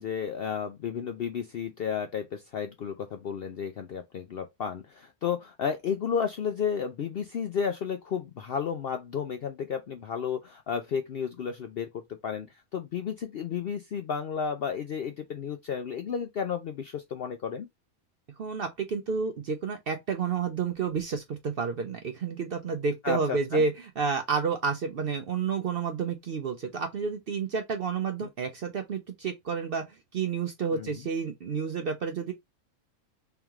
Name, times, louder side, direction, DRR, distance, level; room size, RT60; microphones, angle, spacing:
voice 1, 0.0-17.7 23.0-23.6 28.2-28.3 30.7-31.0, left 7 dB, 65° left, 0.6 m, -32 dB
voice 2, 18.4-29.9 30.1-32.3, right 5 dB, 60° right, 0.6 m, -30 dB
3.5 x 3.0 x 3.5 m
omnidirectional pair, 1.5 m